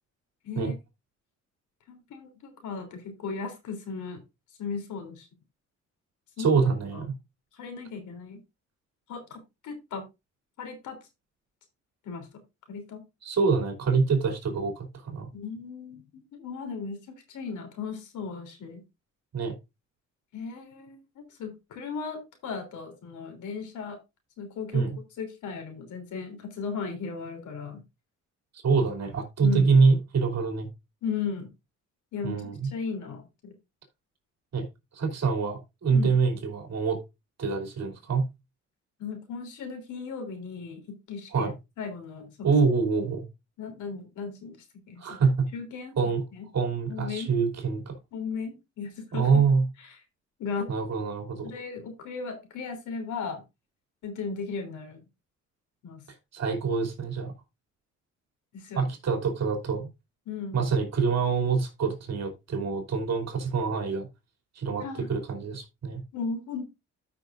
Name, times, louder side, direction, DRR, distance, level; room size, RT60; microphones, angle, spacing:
voice 1, 0.4-0.7 1.9-4.2 4.6-5.3 6.4-6.6 6.9-7.0 7.5-8.4 9.1-10.0 10.6-11.0 12.0-12.3 12.7-13.0 15.3-18.8 20.3-24.0 24.4-24.9 25.2-27.8 29.4-29.8 31.0-31.5 32.1-33.5 35.9-36.2 39.0-41.5 41.8-42.3 43.6-45.2 45.5-46.0 46.3-46.5 46.9-47.3 48.1-49.3 49.8-50.0 50.4-50.7 51.4-53.4 54.0-55.0 55.8-56.0 58.5-58.8 60.2-60.6 64.8-65.1 66.1-66.6, left 5 dB, 80° left, 3.3 m, -36 dB
voice 2, 6.4-7.1 13.2-15.3 19.3-19.5 24.7-24.9 28.6-30.7 32.2-32.7 34.5-34.7 34.9-37.0 37.4-38.3 41.3-41.5 42.4-43.3 45.0-45.5 46.0-46.2 46.5-48.0 49.1-49.7 50.7-51.5 56.3-57.3 58.7-59.9 60.5-64.1 64.5-66.0, right 5 dB, 60° right, 3.0 m, -25 dB
13.5 x 6.0 x 2.5 m
cardioid pair, 90°, 30 cm